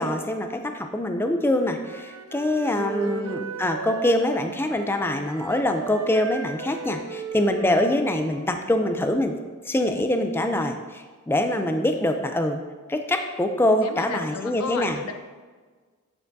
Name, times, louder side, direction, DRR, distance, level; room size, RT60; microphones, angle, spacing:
voice 1, 0.0-9.3 9.7-12.6 12.9-15.0, left 1 dB, 10° left, 6 dB, 0.3 m, -24 dB
Wind instrument woodwind instrument, 1.3-9.1, right 5 dB, 90° right, 0.6 m, -37 dB
voice 2, 2.6-3.4 13.8-15.1, left 4 dB, 85° left, 7 dB, 0.6 m, -34 dB
8.6 x 6.8 x 2.6 m, 1.4 s
head